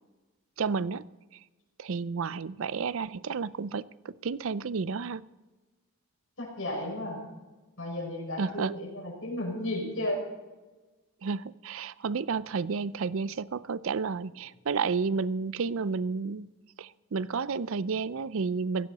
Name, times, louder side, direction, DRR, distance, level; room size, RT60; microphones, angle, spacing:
voice 1, 0.6-1.0 1.8-5.2 8.4-8.7 11.2-16.5 16.8-18.9, right 5 dB, 70° right, 0.5 m, -31 dB
voice 2, 6.4-7.2 7.8-10.2, left 1 dB, 70° left, 5.8 m, -33 dB
16.5 x 15.0 x 4.1 m
head